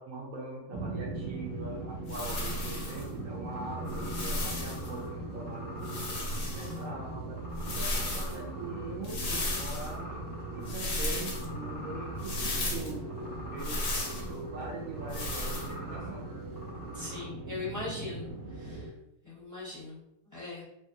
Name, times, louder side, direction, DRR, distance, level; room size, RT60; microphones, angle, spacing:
voice 1, 0.0-6.3 6.5-7.4 7.7-10.2 10.5-13.8 14.1-16.3, right 3 dB, 70° right, -2 dB, 0.9 m, -42 dB
sound 1, 0.7-18.9, right 2 dB, 85° right, 1.2 m, -40 dB
sound 2, 2.1-3.0 3.9-4.9 5.8-6.8 7.5-8.4 9.0-9.9 10.7-11.5 12.2-12.9 13.6-14.3 15.1-15.7, left 2 dB, 60° left, 0.7 m, -34 dB
sound 3, 2.2-17.2, left 1 dB, 40° right, 1.2 m, -47 dB
voice 2, 16.9-18.3 18.6-18.9 19.2-20.6, left 2 dB, 15° left, -8 dB, 0.6 m, -40 dB
3.1 x 2.3 x 2.6 m, 0.84 s
omnidirectional pair, 1.7 m